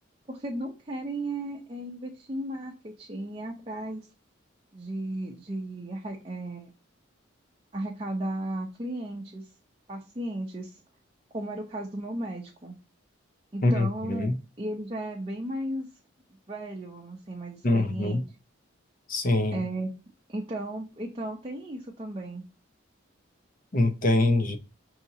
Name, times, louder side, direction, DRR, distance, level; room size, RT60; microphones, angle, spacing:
voice 1, 0.3-4.1 4.7-6.7 7.7-9.4 9.9-10.8 11.3-12.7 13.5-14.3 14.6-15.9 16.5-18.2 19.5-19.9 20.3-22.4, right 1 dB, 25° right, 0.6 m, -35 dB
voice 2, 13.6-14.3 17.6-18.2 19.1-19.6 23.7-24.6, left 2 dB, 40° left, 0.6 m, -24 dB
5.9 x 2.8 x 2.7 m
head